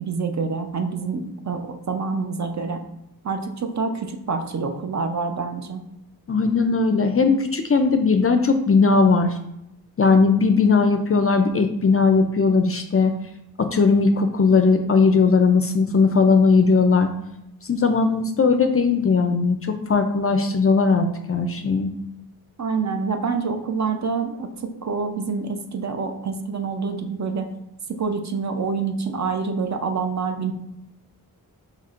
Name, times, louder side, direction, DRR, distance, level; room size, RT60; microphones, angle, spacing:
voice 1, 0.0-2.8 3.2-5.8 22.6-24.5 24.8-27.5 28.0-30.5, right 4 dB, 45° right, 5 dB, 0.5 m, -26 dB
voice 2, 6.3-9.3 10.0-13.1 13.6-17.1 17.7-21.9, left 4 dB, 40° left, 7 dB, 0.4 m, -18 dB
5.8 x 3.1 x 2.4 m, 0.84 s
wide cardioid pair, 100°, 38 cm